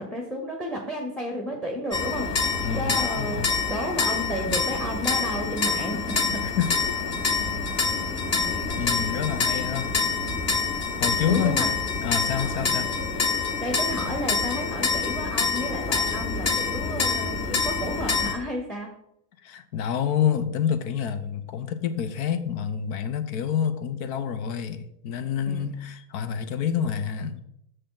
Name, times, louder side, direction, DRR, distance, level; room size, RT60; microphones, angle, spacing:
voice 1, 0.0-2.3 2.7-3.4 3.7-6.4 11.3-11.7 12.3-12.7 13.6-18.9 25.4-25.7, equal, ahead, 2 dB, 0.8 m, -32 dB
sound 1, 1.9-18.3, left 4 dB, 35° left, 1.2 m, -26 dB
voice 2, 2.6-3.5 6.4-7.0 8.8-10.0 11.0-11.7 12.0-12.9 19.4-27.4, left 8 dB, 65° left, 11 dB, 0.9 m, -28 dB
6.7 x 6.6 x 3.8 m, 0.75 s
supercardioid pair, 130°, 47 cm